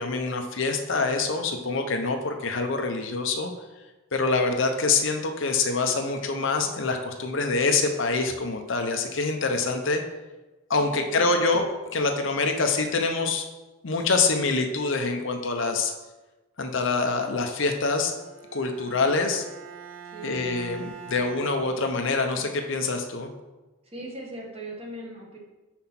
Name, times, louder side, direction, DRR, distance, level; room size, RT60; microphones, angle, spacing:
voice 1, 0.0-3.5 4.1-10.0 10.7-13.5 13.8-15.9 16.6-18.1 18.5-19.4 20.2-23.3, left 3 dB, 65° left, 5 dB, 0.7 m, -25 dB
voice 2, 10.8-11.4 20.0-20.4 23.8-25.4, right 1 dB, 30° right, -2 dB, 1.4 m, -40 dB
Bowed string instrument, 18.1-22.3, right 4 dB, 70° right, 0.7 m, -43 dB
5.9 x 4.5 x 5.8 m, 1.1 s
head